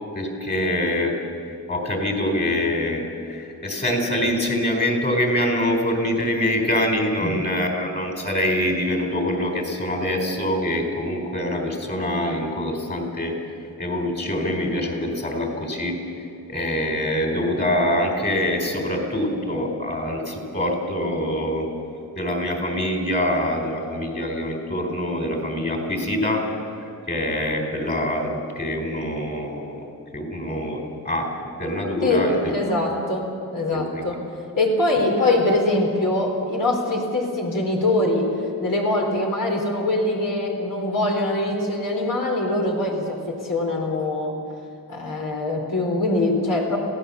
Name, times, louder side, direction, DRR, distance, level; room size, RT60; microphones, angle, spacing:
voice 1, 0.1-1.2 1.7-3.0 3.3-13.4 13.8-16.0 16.5-21.7 22.2-26.4 27.1-29.8 30.1-31.3 31.6-32.5 33.7-34.1, left 1 dB, 25° left, 2 dB, 4.3 m, -24 dB
voice 2, 32.0-34.2 34.6-38.2 38.6-43.2 43.4-44.3 44.9-46.8, left 2 dB, 60° left, 0 dB, 4.3 m, -23 dB
26.0 x 17.0 x 7.1 m, 2.4 s
wide cardioid pair, 130°, 36 cm